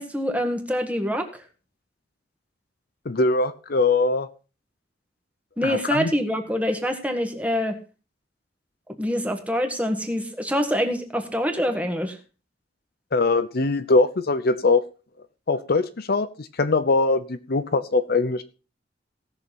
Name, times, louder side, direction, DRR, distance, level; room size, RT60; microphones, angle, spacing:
voice 1, 0.0-1.4 5.6-7.8 9.0-12.2, equal, 10° right, 5 dB, 1.6 m, -25 dB
voice 2, 3.1-4.3 5.6-6.1 13.1-14.8 15.5-18.4, left 3 dB, 55° left, 11 dB, 0.7 m, -22 dB
17.5 x 6.6 x 4.1 m, 0.33 s
head